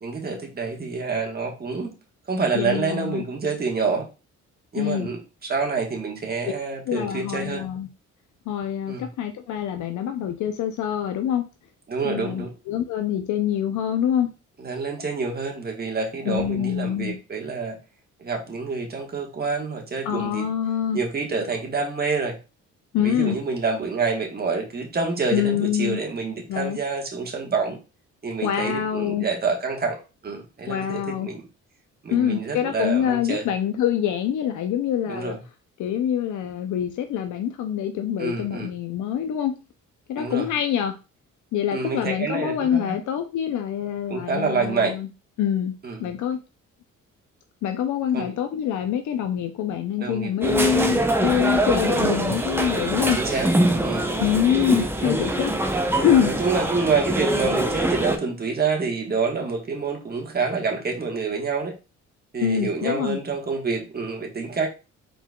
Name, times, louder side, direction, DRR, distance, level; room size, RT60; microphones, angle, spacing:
voice 1, 0.0-1.9 2.3-4.1 4.7-7.6 8.9-9.1 11.9-12.5 14.6-17.8 18.2-20.5 20.9-22.4 23.0-27.8 28.2-31.5 32.0-33.5 35.1-35.4 38.2-38.7 40.2-40.5 41.7-43.0 44.1-45.0 45.8-46.0 48.1-48.3 50.0-51.0 51.3-51.5 53.2-53.5 53.8-54.1 56.2-61.8 62.3-64.7, right 4 dB, 30° right, 1 dB, 1.3 m, -27 dB
voice 2, 2.5-3.2 4.7-5.1 6.9-7.9 8.5-11.4 12.0-14.3 16.2-17.2 20.0-21.0 22.9-23.4 25.3-26.0 26.5-26.8 28.4-29.3 30.7-31.3 32.1-35.4 35.8-39.6 40.1-41.0 41.5-45.1 45.4-45.7 46.0-46.4 47.6-53.5 54.2-55.6 56.0-56.4 62.4-63.2, left 9 dB, 75° left, 7 dB, 0.6 m, -25 dB
sound 1, 50.4-58.2, right 1 dB, 10° right, 0.7 m, -23 dB
4.4 x 4.0 x 2.3 m, 0.29 s
cardioid pair, 90°, 30 cm